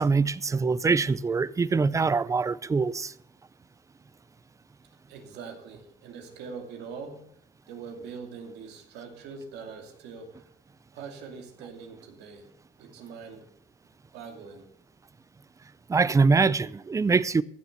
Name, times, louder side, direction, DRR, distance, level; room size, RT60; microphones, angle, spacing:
voice 1, 0.0-3.1 15.9-17.4, right 4 dB, 20° right, 0.5 m, -23 dB
voice 2, 5.1-7.3 7.7-10.4 10.9-12.5 12.8-13.5 14.1-14.7, right 5 dB, 85° right, 2.6 m, -42 dB
15.5 x 7.0 x 6.7 m
cardioid pair, 110°, 17 cm